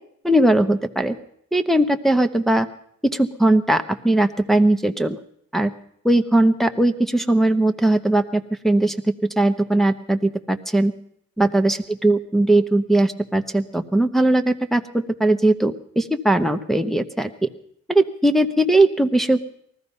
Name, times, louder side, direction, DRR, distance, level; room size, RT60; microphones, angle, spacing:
voice 1, 0.2-1.2 1.5-2.7 3.0-5.2 5.5-5.7 6.0-8.9 9.4-10.9 11.4-17.5 17.9-19.4, right 1 dB, ahead, 6 dB, 0.9 m, -19 dB
19.5 x 14.0 x 5.4 m, 0.70 s
cardioid pair, 90°, 30 cm